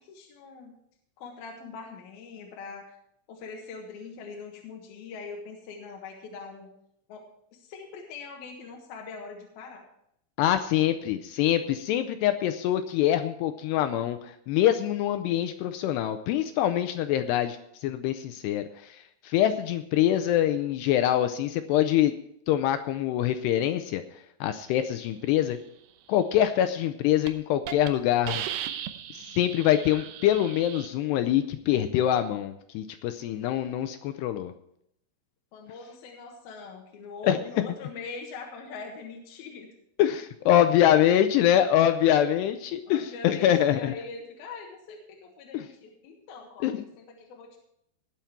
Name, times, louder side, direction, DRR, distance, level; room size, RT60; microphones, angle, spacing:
voice 1, 0.1-0.7 1.2-2.9 3.3-6.7 7.1-7.2 7.5-9.8 35.5-39.7 42.9-47.6, left 4 dB, 65° left, 1 dB, 3.0 m, -42 dB
voice 2, 10.4-22.1 22.5-25.6 26.1-28.4 29.1-34.5 37.2-37.4 40.0-43.9 45.5-45.7 46.6-46.8, left 11 dB, 80° left, 9 dB, 2.5 m, -24 dB
Hiss, 26.7-26.9 27.3-27.4 27.7-27.9 28.3-30.9, right 10 dB, 75° right, 2.7 m, -36 dB
19.5 x 7.3 x 4.6 m, 0.74 s
omnidirectional pair, 5.3 m